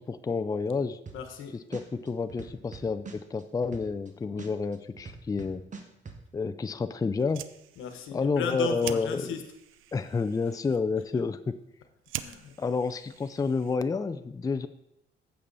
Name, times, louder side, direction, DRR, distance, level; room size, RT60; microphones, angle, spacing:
voice 1, 0.0-1.0 1.5-5.6 6.3-7.4 8.1-9.3 9.9-11.5 12.6-14.7, left 4 dB, 20° left, 10 dB, 0.4 m, -29 dB
voice 2, 1.1-1.5 7.8-9.4 12.2-12.5, left 6 dB, 85° left, 7 dB, 1.1 m, -35 dB
sound 1, 1.1-1.4 1.7-4.1 4.4-6.2, right 5 dB, 40° right, 1.3 m, -42 dB
Fire, 7.1-14.0, right 13 dB, 85° right, 0.5 m, -45 dB
8.6 x 6.9 x 4.0 m, 0.83 s
cardioid pair, 90°, 20 cm